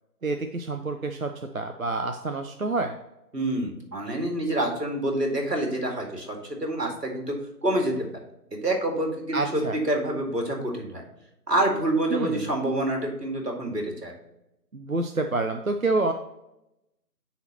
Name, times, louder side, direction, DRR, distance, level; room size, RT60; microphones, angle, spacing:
voice 1, 0.2-2.9 9.3-9.8 12.1-12.4 14.7-16.1, right 3 dB, 60° right, 5 dB, 0.5 m, -28 dB
voice 2, 3.3-7.4 7.6-7.9 8.6-11.0 11.5-14.1, right 1 dB, 75° right, 1 dB, 2.2 m, -27 dB
9.1 x 4.1 x 2.9 m, 0.88 s
figure-of-eight pair, 170°, 49 cm